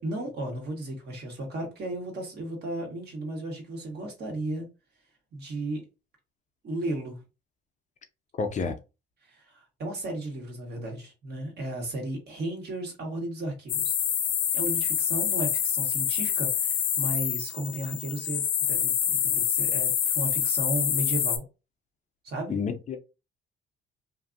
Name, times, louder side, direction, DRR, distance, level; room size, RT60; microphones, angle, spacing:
voice 1, 0.0-4.7 5.3-5.8 6.6-7.2 9.2-14.0 14.5-18.4 18.7-21.4 22.2-22.6, right 1 dB, 55° right, 1.3 m, -34 dB
voice 2, 8.3-8.7 22.5-23.0, left 5 dB, 40° left, 0.5 m, -29 dB
sound 1, 13.7-21.4, left 9 dB, 75° left, 0.7 m, -26 dB
2.5 x 2.5 x 2.5 m
cardioid pair, 100°, 20 cm